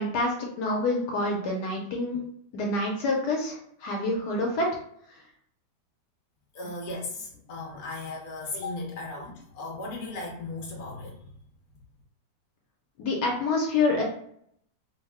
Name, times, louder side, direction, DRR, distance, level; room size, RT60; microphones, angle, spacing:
voice 1, 0.0-2.2 2.5-4.7 13.0-14.0, left 2 dB, 75° left, 0 dB, 1.2 m, -27 dB
voice 2, 6.5-11.3, left 2 dB, 50° left, -1 dB, 1.0 m, -36 dB
2.9 x 2.1 x 3.4 m, 0.68 s
omnidirectional pair, 1.9 m